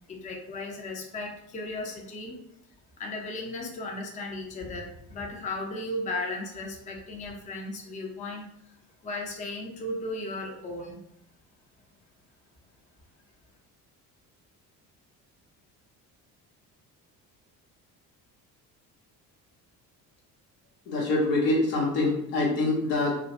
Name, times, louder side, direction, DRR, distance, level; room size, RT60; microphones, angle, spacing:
voice 1, 0.1-2.4 3.0-8.5 9.0-11.0, left 2 dB, 15° left, 1 dB, 0.4 m, -35 dB
voice 2, 20.9-23.1, left 2 dB, 80° left, -3 dB, 0.8 m, -25 dB
2.2 x 2.1 x 2.7 m, 0.78 s
hypercardioid pair, 50°, 49 cm